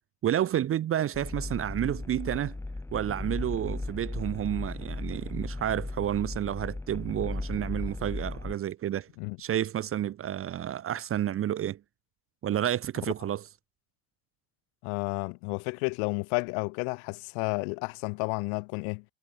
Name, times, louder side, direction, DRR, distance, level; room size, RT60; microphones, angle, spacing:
voice 1, 0.2-2.6 2.9-9.1 9.4-11.8 12.4-13.5, right 11 dB, 30° right, 0.7 m, -30 dB
sound 1, 1.1-8.5, left 2 dB, 5° left, 0.8 m, -36 dB
voice 2, 14.8-19.0, left 40 dB or more, 65° left, 1.6 m, -31 dB
hypercardioid pair, 70°, 44 cm